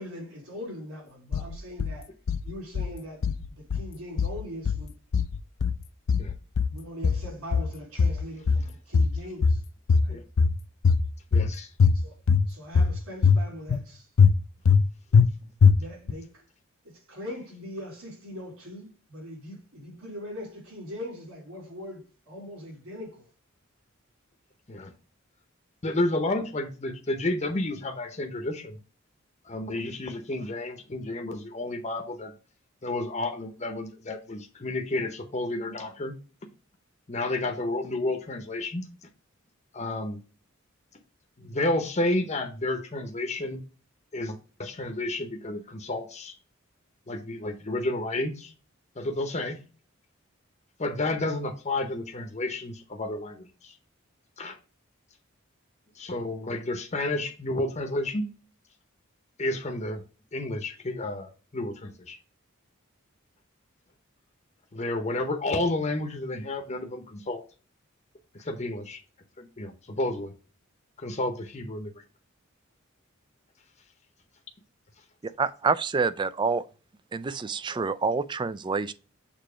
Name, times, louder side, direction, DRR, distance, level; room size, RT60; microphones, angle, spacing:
voice 1, 0.0-2.1 2.4-4.9 6.7-9.6 10.0-10.2 11.9-12.2 12.4-14.1 15.8-16.4 16.8-23.3, left 1 dB, 80° right, 3.6 m, -41 dB
sound 1, 1.3-1.9 2.3-2.9 3.2-3.9 4.2-4.9 5.1-5.8 6.1-6.8 7.0-7.7 8.0-8.7 8.9-9.6 9.9-10.5 10.8-11.5 11.8-12.4 12.7-13.4 13.7-13.8 14.2-14.8 15.1-15.3 15.6-16.1, left 5 dB, 65° left, 0.4 m, -21 dB
voice 2, 11.3-11.7 24.7-24.9 25.8-28.8 29.4-32.3 32.8-36.1 37.1-38.9 39.7-40.2 41.4-43.6 44.1-46.3 47.1-48.5 49.0-49.6 50.8-53.7 54.4-54.6 56.0-58.2 59.4-60.0 60.3-62.2 64.7-67.4 68.4-69.0 69.4-70.3 71.0-71.9, left 2 dB, 35° left, 0.8 m, -31 dB
voice 3, 75.4-76.6 77.1-78.9, right 4 dB, 20° right, 0.3 m, -27 dB
6.8 x 3.0 x 4.9 m
head